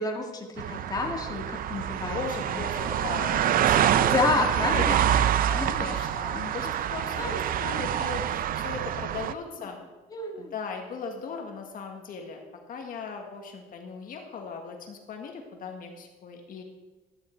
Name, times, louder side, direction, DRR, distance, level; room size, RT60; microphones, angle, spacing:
voice 1, 0.0-2.6 4.0-5.2 5.6-5.9 6.6-6.7 7.2-7.4 10.1-10.5, left 3 dB, 20° left, 1 dB, 2.0 m, -30 dB
sound 1, 0.6-9.3, right 10 dB, 60° right, 0.6 m, -26 dB
voice 2, 2.1-4.1 4.6-4.8 5.5-7.2 7.6-9.8 10.3-16.6, left 5 dB, 55° left, 2 dB, 1.6 m, -38 dB
12.5 x 10.5 x 4.5 m, 1.2 s
cardioid pair, 110°, 17 cm